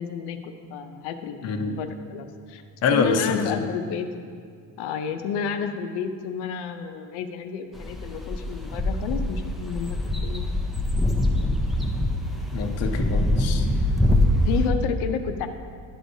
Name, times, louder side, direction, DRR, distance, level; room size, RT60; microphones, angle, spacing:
voice 1, 0.0-2.6 2.9-4.1 4.8-10.4 14.4-15.5, left 6 dB, 90° left, 7 dB, 0.6 m, -31 dB
voice 2, 1.4-1.8 2.8-3.7 12.5-13.7, left 5 dB, 40° left, 4 dB, 0.6 m, -25 dB
sound 1, 7.7-14.7, left 1 dB, ahead, 0.3 m, -24 dB
11.0 x 6.3 x 2.6 m, 2.1 s
cardioid pair, 150°, 40 cm